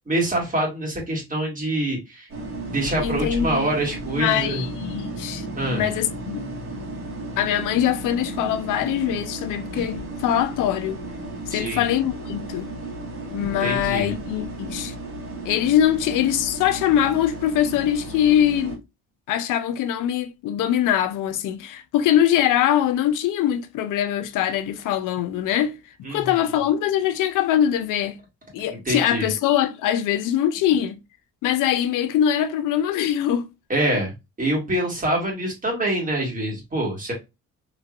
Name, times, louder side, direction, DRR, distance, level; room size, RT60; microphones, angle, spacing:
voice 1, 0.1-2.3 2.7-4.6 5.6-5.8 11.5-11.8 13.4-14.1 26.0-26.4 28.7-29.3 33.7-34.1 34.4-37.1, right 1 dB, 25° right, 1.8 m, -25 dB
sound 1, 2.3-18.8, right 1 dB, 45° right, 1.4 m, -34 dB
voice 2, 3.0-3.7 4.1-5.4 5.7-6.5 7.4-11.0 11.5-12.7 13.3-14.9 15.4-18.8 19.3-25.8 26.1-28.2 28.5-31.0 31.4-33.5, left 10 dB, 85° left, 0.5 m, -22 dB
3.1 x 2.9 x 2.4 m
cardioid pair, 110°, 30 cm